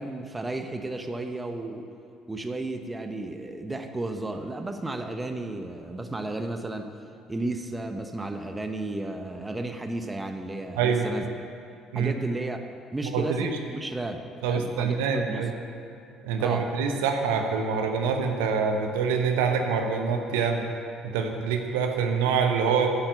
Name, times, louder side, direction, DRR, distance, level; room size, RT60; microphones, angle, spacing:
voice 1, 0.0-1.9 2.3-6.9 7.3-11.4 11.9-12.6 12.9-15.5 16.4-16.7, right 2 dB, 15° right, 6 dB, 1.0 m, -33 dB
voice 2, 13.0-13.6 14.4-15.5 16.2-20.6 21.0-22.9, right 6 dB, 70° right, 4 dB, 0.9 m, -25 dB
9.5 x 7.2 x 8.1 m, 2.5 s
figure-of-eight pair, 55°, 0 cm